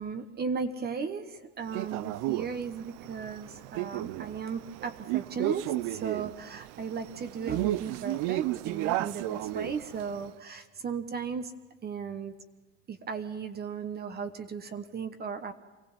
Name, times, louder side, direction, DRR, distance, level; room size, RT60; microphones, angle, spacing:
voice 1, 0.0-11.5 11.8-12.3 12.9-15.5, right 6 dB, 25° right, 10 dB, 1.2 m, -36 dB
Male speech man speaking, 1.7-10.3, right 15 dB, 55° right, 0.7 m, -33 dB
24.5 x 16.0 x 7.2 m, 1.2 s
supercardioid pair, 115°, 36 cm